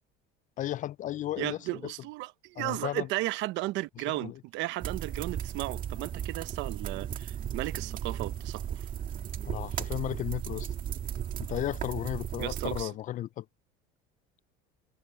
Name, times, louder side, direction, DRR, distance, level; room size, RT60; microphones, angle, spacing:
voice 1, 0.6-1.9 2.6-3.1 4.2-4.4 9.4-10.7 11.4-13.5, left 13 dB, 40° left, 0.4 m, -34 dB
voice 2, 1.4-8.9 12.4-12.9, right 19 dB, 70° right, 1.1 m, -35 dB
sound 1, 4.8-12.8, right 9 dB, 45° right, 2.2 m, -36 dB
supercardioid pair, 110°, 20 cm